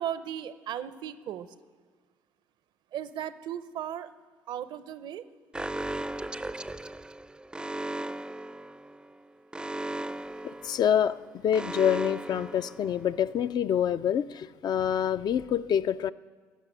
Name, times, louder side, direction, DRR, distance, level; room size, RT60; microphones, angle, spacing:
voice 1, 0.0-1.5 2.9-4.1 4.5-5.2, right 10 dB, 70° right, 14 dB, 0.6 m, -36 dB
Alarm, 5.5-13.3, right 1 dB, 10° right, 0.4 m, -37 dB
voice 2, 10.4-16.1, left 9 dB, 55° left, 13 dB, 0.4 m, -26 dB
15.5 x 6.1 x 9.4 m, 1.5 s
hypercardioid pair, 55°, 8 cm